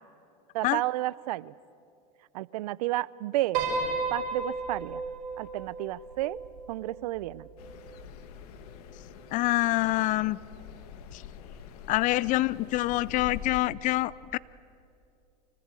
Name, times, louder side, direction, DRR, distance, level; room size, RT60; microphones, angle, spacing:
voice 1, 0.5-1.5 2.3-3.6 4.1-5.0 5.4-6.4 6.7-7.5, right 17 dB, 75° right, 21 dB, 0.6 m, -31 dB
Piano, 3.5-8.0, right 4 dB, 60° right, 5.4 m, -34 dB
sound 1, 7.6-13.6, left 8 dB, 75° left, 1.9 m, -45 dB
voice 2, 9.3-10.4 11.1-11.2 11.9-14.4, left 17 dB, 40° left, 21 dB, 0.5 m, -26 dB
25.0 x 19.0 x 8.3 m, 2.6 s
supercardioid pair, 120°, 20 cm